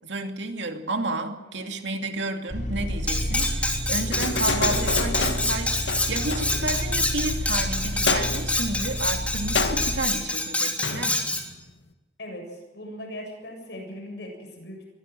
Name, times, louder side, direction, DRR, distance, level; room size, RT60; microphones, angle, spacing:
voice 1, 0.0-11.2, right 2 dB, 85° right, 4 dB, 2.6 m, -31 dB
sound 1, 2.5-10.0, equal, 45° left, 4.3 m, -30 dB
Cutlery silverware, 3.1-11.5, left 2 dB, 10° left, 3.1 m, -27 dB
sound 2, 4.1-7.0 8.1-8.7 9.6-10.1 10.8-11.7, left 4 dB, 90° left, 1.6 m, -29 dB
voice 2, 12.2-14.8, left 1 dB, 70° left, 2 dB, 7.5 m, -39 dB
23.0 x 16.0 x 7.7 m, 1.1 s
head